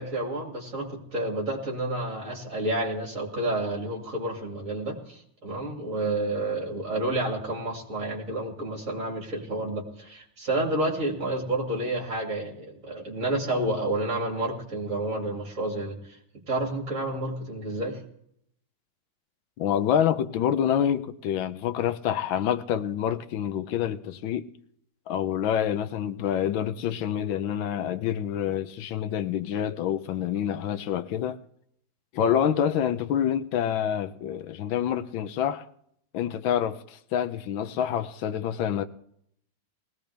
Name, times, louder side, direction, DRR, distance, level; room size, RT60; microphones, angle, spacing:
voice 1, 0.0-16.2 16.5-18.0 32.2-32.4, right 1 dB, 40° right, 2.9 m, -30 dB
voice 2, 19.6-24.5 25.1-31.4 32.1-35.7 36.1-38.8, left 9 dB, 85° left, 1.6 m, -27 dB
19.5 x 16.5 x 3.4 m
omnidirectional pair, 2.1 m